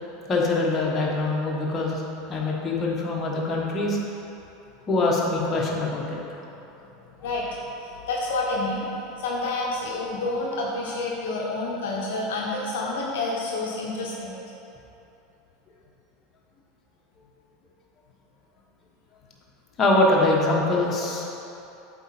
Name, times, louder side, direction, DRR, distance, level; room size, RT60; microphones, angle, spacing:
voice 1, 0.3-2.0 2.3-4.0 4.9-6.2 19.8-21.3, left 2 dB, 30° left, -3 dB, 1.4 m, -23 dB
voice 2, 7.2-8.9 9.2-14.4, left 2 dB, 70° left, -3 dB, 0.8 m, -29 dB
7.9 x 4.5 x 4.5 m, 3.0 s
hypercardioid pair, 85°, 0 cm